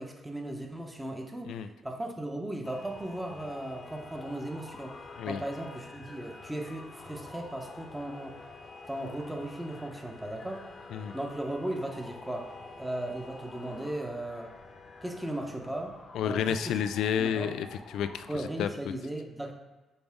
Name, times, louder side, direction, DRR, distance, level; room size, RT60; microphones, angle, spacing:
voice 1, 0.0-8.4 8.9-10.6 11.1-12.5 12.8-14.5 15.0-16.0 16.2-16.7 17.2-17.5 18.3-19.5, right 1 dB, 10° right, 3 dB, 1.1 m, -37 dB
sound 1, 2.6-18.5, left 3 dB, 45° left, 0.9 m, -48 dB
voice 2, 16.1-18.7, left 8 dB, 80° left, 10 dB, 0.3 m, -30 dB
7.0 x 4.9 x 3.6 m, 1.2 s
cardioid pair, 90°, 0 cm